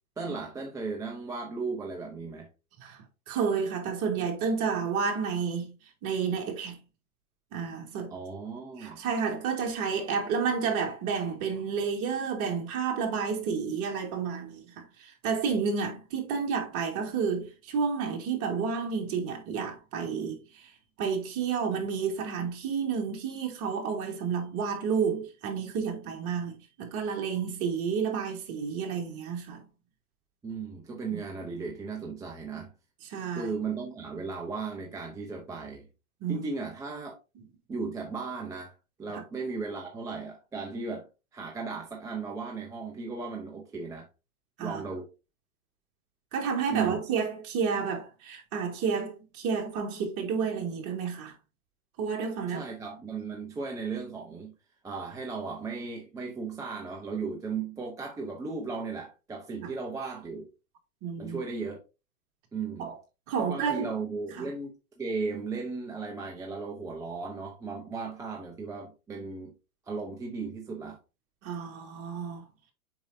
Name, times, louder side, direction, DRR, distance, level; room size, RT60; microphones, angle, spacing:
voice 1, 0.2-2.5 8.1-9.0 30.4-32.7 33.3-35.9 36.3-37.2 37.7-41.1 41.3-44.1 44.6-45.1 46.7-47.1 52.5-54.5 54.8-60.5 61.2-61.8 62.5-62.9 63.4-64.7 65.0-69.5 69.9-71.0, right 4 dB, 10° right, 0.7 m, -36 dB
voice 2, 2.8-5.7 6.0-6.8 7.5-8.1 8.8-14.6 15.0-20.6 21.0-29.6 31.1-31.2 33.1-33.5 36.2-36.4 37.4-37.5 44.6-44.8 46.3-51.3 52.0-52.7 59.6-59.7 61.0-61.4 62.8-62.9 63.3-63.9 64.4-64.5 71.4-72.4, right 6 dB, 35° right, 2.2 m, -30 dB
7.0 x 5.2 x 2.7 m
hypercardioid pair, 120°, 42 cm